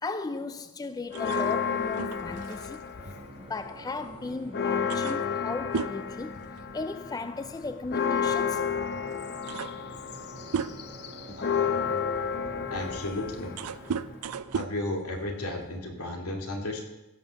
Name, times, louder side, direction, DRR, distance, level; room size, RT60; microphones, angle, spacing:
voice 1, 0.0-2.9 3.4-6.4 6.7-8.7, left 3 dB, 15° left, 0.3 m, -36 dB
Church bell, 1.1-3.5 3.9-4.0 4.3-14.3, left 6 dB, 50° left, 0.7 m, -32 dB
sound 1, 1.1-4.2 4.5-4.6 4.9-7.1 7.3-7.6 8.6-8.7 9.1-11.1 11.7-15.8, right 6 dB, 90° right, 0.5 m, -37 dB
sound 2, 3.0-14.6, right 2 dB, 25° right, 1.0 m, -49 dB
voice 2, 11.4-12.0 12.7-13.5 14.5-16.8, left 1 dB, 80° left, 2.5 m, -34 dB
16.5 x 5.6 x 6.9 m
head